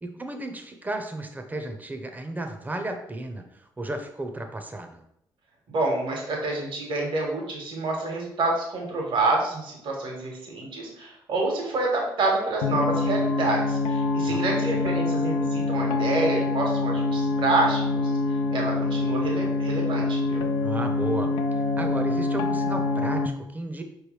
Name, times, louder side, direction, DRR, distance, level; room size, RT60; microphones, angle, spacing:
voice 1, 0.0-5.0 14.3-14.4 20.6-23.8, right 1 dB, 20° right, 5 dB, 0.7 m, -34 dB
voice 2, 5.7-18.1 18.5-20.4, right 2 dB, 65° right, -1 dB, 1.5 m, -27 dB
sound 1, 12.6-23.3, left 3 dB, 80° left, 0.4 m, -25 dB
4.8 x 3.2 x 3.2 m, 0.78 s
supercardioid pair, 60°, 9 cm